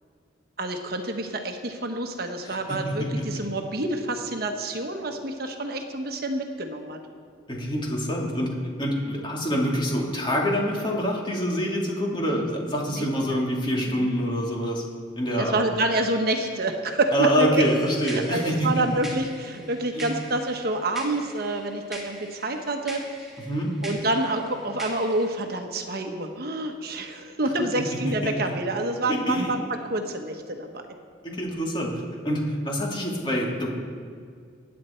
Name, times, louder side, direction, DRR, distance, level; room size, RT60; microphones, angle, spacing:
voice 1, 0.6-7.0 12.3-12.4 12.9-13.4 13.9-14.1 15.4-17.6 18.0-23.3 23.8-29.6 29.9-30.8, right 2 dB, 55° right, 4 dB, 1.1 m, -28 dB
voice 2, 2.4-3.4 7.5-14.8 15.2-15.7 17.1-18.8 19.9-20.1 23.5-23.7 28.2-28.3 29.1-29.5 31.2-33.7, equal, 25° left, -2 dB, 2.6 m, -26 dB
sound 1, 17.6-25.3, equal, ahead, 2.4 m, -43 dB
24.0 x 9.6 x 4.5 m, 2.2 s
head